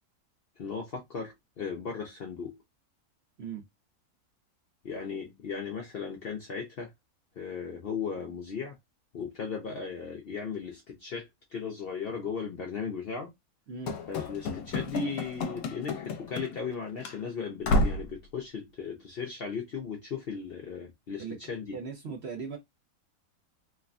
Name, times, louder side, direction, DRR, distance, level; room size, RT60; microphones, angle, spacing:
voice 1, 0.6-2.6 4.8-6.9 7.4-8.8 9.1-13.3 14.1-21.8, left 5 dB, 60° left, 0.6 m, -37 dB
voice 2, 13.7-14.0 21.2-21.4 21.7-22.6, right 6 dB, 60° right, 0.7 m, -38 dB
Run / Slam, 13.9-16.7 17.0-17.2 17.6-18.1, left 2 dB, 80° left, 1.1 m, -30 dB
3.2 x 2.1 x 2.4 m
omnidirectional pair, 1.6 m